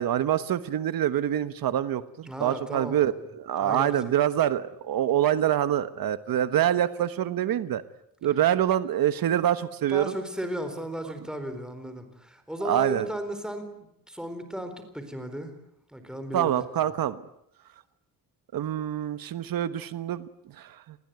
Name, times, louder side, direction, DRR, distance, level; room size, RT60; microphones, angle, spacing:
voice 1, 0.0-7.8 8.2-10.1 12.6-13.1 16.3-17.2 18.5-21.0, right 11 dB, 80° right, 12 dB, 1.3 m, -26 dB
voice 2, 2.3-3.1 3.6-4.1 9.9-15.5 15.9-16.7, right 1 dB, ahead, 8 dB, 4.0 m, -35 dB
30.0 x 20.5 x 9.4 m, 0.77 s
wide cardioid pair, 175°, 34 cm